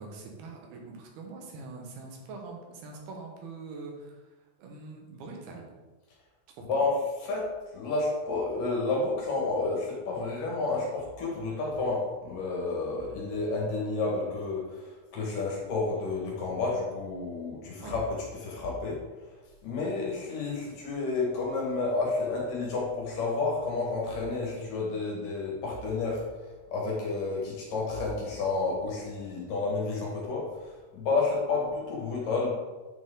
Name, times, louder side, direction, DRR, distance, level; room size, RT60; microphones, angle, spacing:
voice 1, 0.0-4.2 4.6-5.7 6.6-6.8 17.8-17.9, right 3 dB, 90° right, 1 dB, 3.1 m, -43 dB
voice 2, 7.7-18.1 18.4-19.0 19.6-26.2 26.7-30.5 30.9-32.5, left 3 dB, 65° left, -3 dB, 3.1 m, -30 dB
9.3 x 4.6 x 3.8 m, 1.2 s
omnidirectional pair, 4.3 m